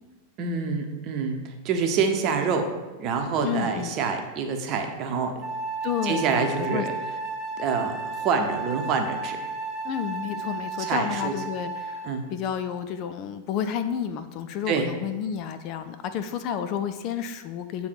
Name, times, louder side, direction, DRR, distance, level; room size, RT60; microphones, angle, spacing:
voice 1, 0.4-2.7 3.0-5.3 6.0-6.9 7.6-7.9 8.2-9.4 10.8-11.3 12.0-12.3 14.7-14.9, right 5 dB, 40° right, 4 dB, 0.8 m, -26 dB
voice 2, 3.4-4.0 5.8-6.9 9.8-12.0 12.3-17.9, left 8 dB, 40° left, 10 dB, 0.4 m, -31 dB
Wind instrument woodwind instrument, 5.4-12.2, right 3 dB, 20° right, 1.2 m, -33 dB
7.5 x 3.8 x 4.5 m, 1.2 s
figure-of-eight pair, 90°, 0 cm